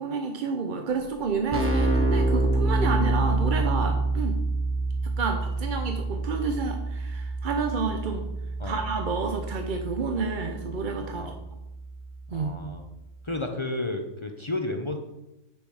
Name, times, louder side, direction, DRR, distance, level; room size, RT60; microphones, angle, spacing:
voice 1, 0.0-4.4 5.0-8.2 8.6-11.3 12.3-12.5, right 4 dB, 45° right, 4 dB, 0.7 m, -30 dB
Keyboard (musical), 1.2-11.8, right 2 dB, 10° right, 0.8 m, -27 dB
voice 2, 12.3-12.9 13.2-15.0, left 2 dB, 35° left, 4 dB, 0.5 m, -32 dB
8.2 x 6.9 x 4.8 m, 0.93 s
omnidirectional pair, 1.6 m